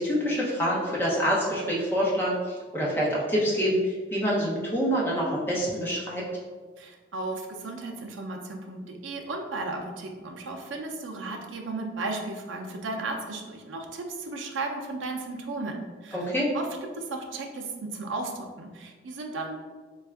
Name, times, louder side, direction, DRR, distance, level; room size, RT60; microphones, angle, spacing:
voice 1, 0.0-6.2 16.1-16.5, equal, 10° left, -6 dB, 0.7 m, -26 dB
voice 2, 6.8-16.3 16.5-16.7 17.0-19.6, right 3 dB, 80° right, 2 dB, 0.5 m, -35 dB
3.4 x 2.3 x 3.4 m, 1.4 s
head